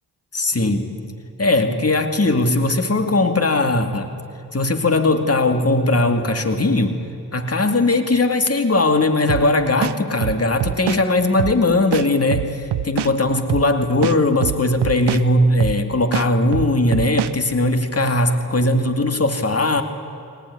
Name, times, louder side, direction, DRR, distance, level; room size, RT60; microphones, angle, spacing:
voice 1, 0.3-1.0 1.4-4.1 4.5-7.0 7.3-19.8, left 2 dB, 35° left, 7 dB, 2.4 m, -19 dB
sound 1, 9.3-9.5 9.8-11.0 11.4-11.6 11.9-13.1 13.5-13.7 14.0-15.2 15.6-15.8 16.1-17.3, right 12 dB, 85° right, 0.7 m, -24 dB
23.0 x 18.5 x 9.7 m, 2.7 s
cardioid pair, 45°, 40 cm